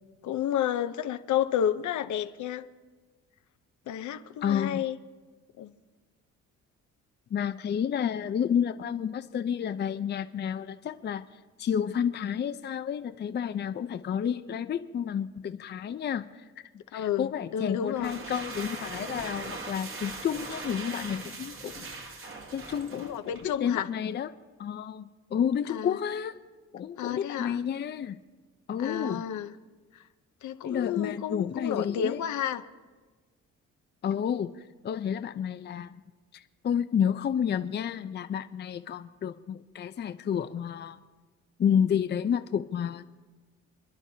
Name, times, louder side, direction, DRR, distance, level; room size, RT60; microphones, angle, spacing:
voice 1, 0.2-2.7 3.9-5.0 5.6-5.7 16.9-18.1 22.9-23.9 25.7-26.0 27.0-27.6 28.8-29.5 29.9-30.0 30.4-32.6, left 9 dB, 75° left, 10 dB, 0.7 m, -31 dB
voice 2, 4.4-4.8 7.3-11.2 11.6-16.4 16.9-21.9 22.2-24.3 24.6-26.4 26.7-28.2 28.7-29.2 30.6-32.2 34.0-36.0 36.3-41.0 41.6-43.0, left 8 dB, 35° left, 11 dB, 0.5 m, -30 dB
sound 1, 17.8-23.6, right 3 dB, 45° right, 1.6 m, -40 dB
30.0 x 10.5 x 2.8 m, 1.4 s
cardioid pair, 90°, 30 cm